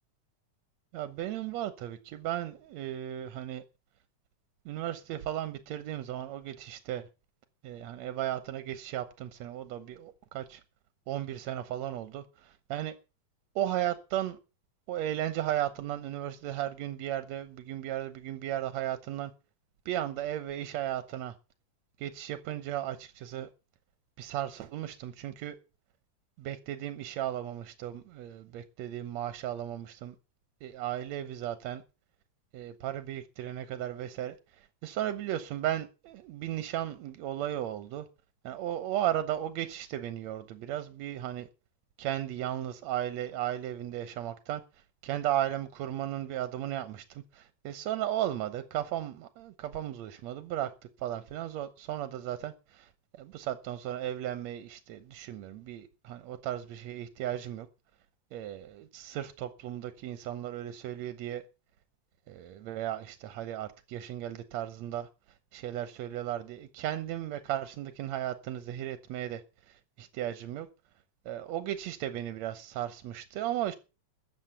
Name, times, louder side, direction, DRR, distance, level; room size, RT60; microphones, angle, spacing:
voice 1, 0.9-3.6 4.7-7.0 7.6-10.6 11.1-12.9 13.6-14.4 14.9-19.3 19.9-21.3 22.0-23.5 24.2-25.6 26.4-30.2 30.6-31.8 32.5-38.1 38.4-41.5 42.0-44.6 45.0-50.7 51.0-57.7 58.3-61.4 62.3-65.1 65.5-69.4 69.7-70.7 71.3-73.8, right 12 dB, 65° right, 2.0 m, -35 dB
13.5 x 8.5 x 6.8 m
omnidirectional pair, 3.8 m